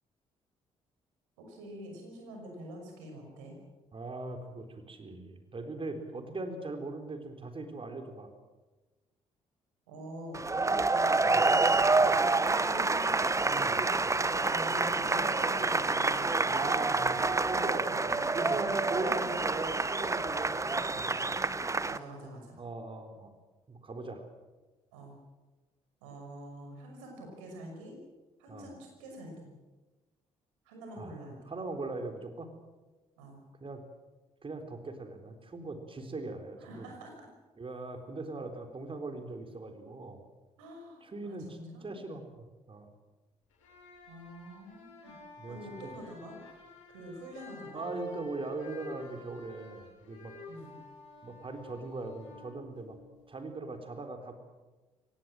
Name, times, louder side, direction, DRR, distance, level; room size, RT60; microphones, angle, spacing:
voice 1, 1.4-3.6 5.9-6.2 9.9-13.3 14.1-16.4 16.9-17.5 17.9-18.8 21.8-22.6 24.9-25.2 26.0-28.0 28.4-29.5 30.6-31.5 33.2-33.4 36.6-37.3 40.6-42.0 44.1-45.1 45.5-46.4 46.9-47.9 50.5-50.8, right 1 dB, 80° right, 2 dB, 5.8 m, -46 dB
voice 2, 3.9-8.3 11.3-11.4 12.0-12.2 13.5-13.8 16.5-17.2 17.5-17.9 18.3-21.2 22.6-23.3 23.7-24.2 28.5-28.7 31.0-31.2 31.5-32.5 33.6-33.9 34.4-36.9 37.6-40.2 41.0-42.9 45.4-45.6 45.8-45.9 47.7-50.3 51.2-53.0 53.3-54.3, right 3 dB, 35° right, 6 dB, 3.9 m, -40 dB
sound 1, 10.3-22.0, right 3 dB, 20° right, 1.0 m, -28 dB
sound 2, 43.5-53.3, left 1 dB, 80° left, 6.5 m, -49 dB
24.0 x 18.0 x 7.6 m, 1.2 s
hypercardioid pair, 45°, 16 cm